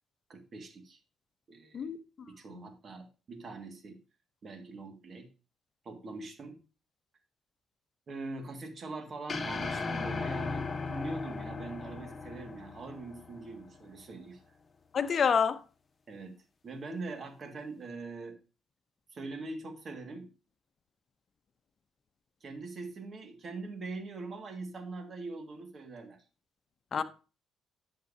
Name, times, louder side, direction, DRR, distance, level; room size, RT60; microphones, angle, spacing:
voice 1, 0.3-1.0 1.5-2.0 2.3-4.0 4.4-5.3 5.9-6.6 8.1-14.4 16.1-16.4 16.6-18.4 19.1-20.3 22.4-26.2 26.9-27.0, right 3 dB, 50° right, 2.0 m, -42 dB
voice 2, 1.7-2.3 2.5-2.7 14.9-15.6 26.9-27.0, left 6 dB, 50° left, 0.8 m, -28 dB
sound 1, 9.3-13.7, left 4 dB, 35° left, 1.2 m, -37 dB
10.5 x 7.5 x 2.8 m
cardioid pair, 90°, 0 cm